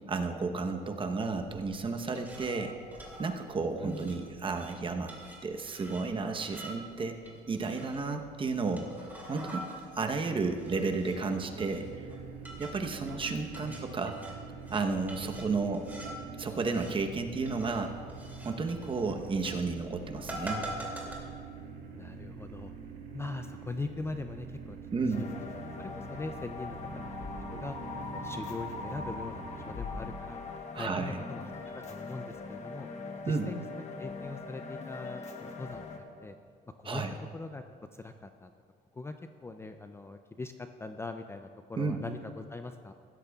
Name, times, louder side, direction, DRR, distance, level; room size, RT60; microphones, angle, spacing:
voice 1, 0.1-2.8 3.2-5.1 5.4-8.9 9.3-9.7 10.0-12.0 12.6-14.2 14.7-15.9 16.4-17.9 18.4-20.7 24.9-25.2 30.7-31.2 33.3-33.5 36.8-37.1 41.8-42.0, right 4 dB, 30° right, 5 dB, 0.9 m, -32 dB
sound 1, 1.3-21.1, right 1 dB, 10° right, 2.5 m, -46 dB
voice 2, 3.8-4.1 13.6-13.9 21.9-22.7 23.1-27.8 28.1-30.4 30.7-32.9 33.2-35.8 36.1-36.4 36.8-37.0 37.3-37.6 37.9-38.5 38.9-39.1 39.4-42.9, left 3 dB, 15° left, 7 dB, 0.4 m, -41 dB
sound 2, 10.6-29.8, right 5 dB, 85° right, 1.9 m, -45 dB
sound 3, 25.1-36.0, left 3 dB, 45° left, 1.2 m, -41 dB
16.0 x 12.0 x 2.4 m, 2.2 s
cardioid pair, 110°, 17 cm